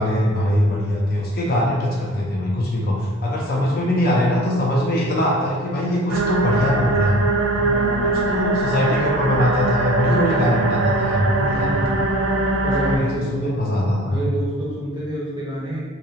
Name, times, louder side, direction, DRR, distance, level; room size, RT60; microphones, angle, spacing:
voice 1, 0.0-7.2 8.0-12.0 12.8-14.2, left 1 dB, 45° left, -3 dB, 0.4 m, -21 dB
voice 2, 3.6-3.9 7.6-8.2 11.3-12.1 12.6-13.6 14.1-15.8, right 1 dB, 20° right, -6 dB, 0.5 m, -28 dB
sound 1, 6.1-13.0, right 3 dB, 70° right, 0.3 m, -22 dB
2.5 x 2.1 x 2.7 m, 1.4 s
head